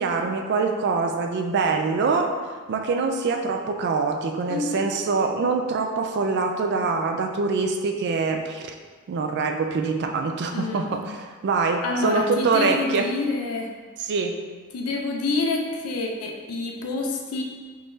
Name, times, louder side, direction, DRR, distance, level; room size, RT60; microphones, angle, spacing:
voice 1, 0.0-2.3 2.7-8.7 9.1-11.2 11.4-13.1 14.0-14.4, right 4 dB, 50° right, 4 dB, 0.3 m, -24 dB
voice 2, 4.5-4.9 10.5-11.0 11.8-13.7 14.7-17.4, left 3 dB, 80° left, 1 dB, 0.5 m, -27 dB
3.6 x 3.0 x 2.6 m, 1.5 s
head